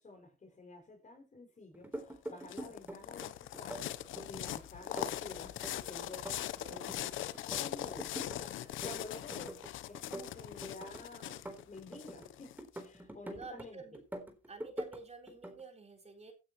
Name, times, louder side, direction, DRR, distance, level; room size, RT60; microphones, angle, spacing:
voice 1, 0.0-3.9 4.3-5.5 5.9-6.3 7.4-8.1 8.4-9.6 9.9-13.8, left 2 dB, 40° left, 6.0 m, -50 dB
sound 1, 1.7-3.3 3.5-4.5 4.8-7.1 7.3-8.4 8.6-9.7 9.9-12.3 12.6-13.7 13.9-15.0 15.3-15.6, right 1 dB, 10° right, 3.8 m, -45 dB
sound 2, 2.0-12.8, left 13 dB, 80° left, 0.9 m, -41 dB
voice 2, 6.2-7.0 13.3-14.0 14.5-16.3, right 4 dB, 30° right, 4.1 m, -50 dB
16.0 x 9.3 x 3.1 m
cardioid pair, 90°, 20 cm